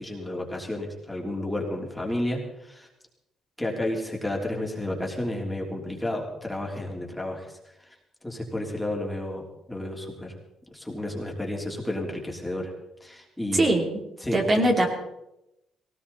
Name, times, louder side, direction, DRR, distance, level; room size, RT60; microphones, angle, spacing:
voice 1, 0.0-2.9 3.6-7.5 8.2-10.3 10.7-12.7 13.0-13.7 14.2-14.4, left 1 dB, 10° left, 0 dB, 3.4 m, -31 dB
voice 2, 13.5-13.9 14.3-14.9, right 1 dB, 35° right, 1 dB, 3.2 m, -21 dB
18.0 x 18.0 x 4.2 m, 0.87 s
cardioid pair, 90°, 0 cm